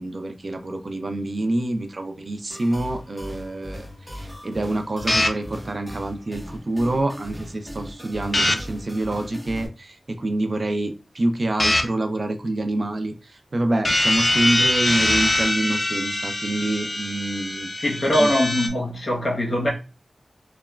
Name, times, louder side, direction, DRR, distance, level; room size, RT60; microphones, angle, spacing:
voice 1, 0.0-17.7 18.2-18.3, right 1 dB, 50° right, 0.4 m, -27 dB
sound 1, 2.5-9.7, equal, 10° left, 0.8 m, -38 dB
sound 2, 5.1-5.3 8.3-8.5 11.6-11.8 13.8-18.7, left 1 dB, 30° left, 0.4 m, -22 dB
voice 2, 17.8-19.7, left 1 dB, 55° left, 0.9 m, -22 dB
2.9 x 2.1 x 2.3 m
wide cardioid pair, 85°, 0 cm